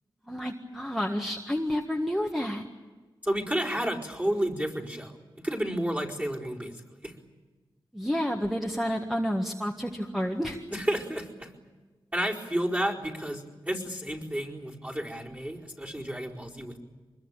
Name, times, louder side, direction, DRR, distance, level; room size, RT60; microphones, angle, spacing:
voice 1, 0.3-2.6 7.9-10.6, equal, ahead, 1 dB, 1.7 m, -30 dB
voice 2, 3.2-6.7 7.0-7.1 10.7-11.5 12.1-16.8, right 1 dB, 20° right, -3 dB, 4.6 m, -31 dB
25.0 x 21.5 x 9.1 m, 1.3 s
wide cardioid pair, 100°, 9 cm